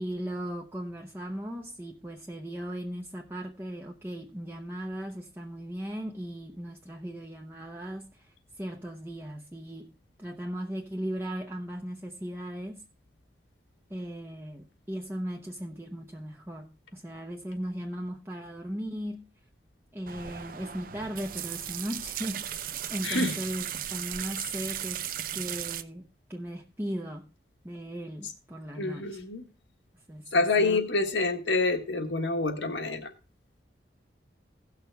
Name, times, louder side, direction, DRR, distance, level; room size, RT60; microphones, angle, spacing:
voice 1, 0.0-9.9 10.2-12.9 13.9-19.3 19.9-25.1 25.3-27.3 27.6-29.2 30.1-30.8, equal, 10° right, 0.7 m, -37 dB
sound 1, 20.1-25.8, right 10 dB, 50° right, 0.6 m, -36 dB
voice 2, 23.0-23.4 28.8-29.4 30.3-33.1, left 3 dB, 80° left, 1.5 m, -27 dB
17.0 x 6.4 x 3.4 m
head